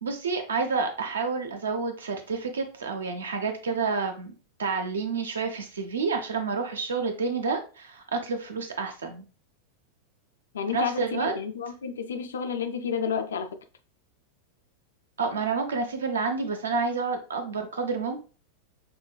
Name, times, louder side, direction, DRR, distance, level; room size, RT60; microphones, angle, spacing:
voice 1, 0.0-4.3 4.6-9.2 10.7-11.3 15.2-18.2, right 4 dB, 70° right, 0.6 m, -29 dB
voice 2, 10.5-13.6, left 6 dB, 65° left, 0.4 m, -31 dB
5.4 x 2.2 x 2.2 m
figure-of-eight pair, 90°, 0 cm